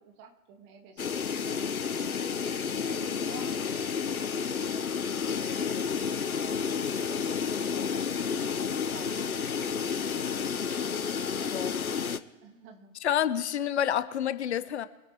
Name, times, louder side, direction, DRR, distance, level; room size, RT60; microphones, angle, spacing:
voice 1, 0.0-2.5 2.9-4.9 5.2-10.0 12.4-12.9, right 5 dB, 30° right, 3 dB, 2.4 m, -51 dB
sound 1, 1.0-12.2, left 6 dB, 80° left, 1.0 m, -31 dB
voice 2, 11.5-12.0 13.0-14.9, left 10 dB, 50° left, 14 dB, 0.9 m, -29 dB
23.5 x 9.2 x 3.5 m, 1.2 s
figure-of-eight pair, 115°, 43 cm